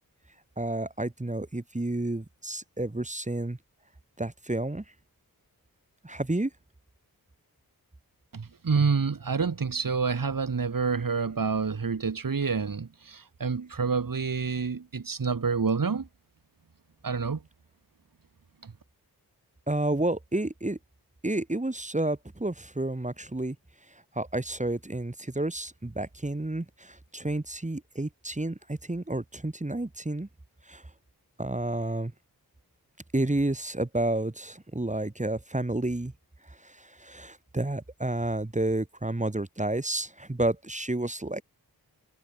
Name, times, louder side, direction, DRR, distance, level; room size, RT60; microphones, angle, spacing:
voice 1, 0.6-3.6 4.2-4.8 6.0-6.5 19.7-20.8 21.2-23.6 24.2-30.3 30.7-30.8 31.4-32.1 33.1-36.1 36.5-41.4, right 2 dB, 20° right, 2.1 m, -30 dB
voice 2, 8.3-16.1 17.0-17.4 18.6-18.7, right 5 dB, 60° right, 2.5 m, -28 dB
cardioid pair, 50°, 38 cm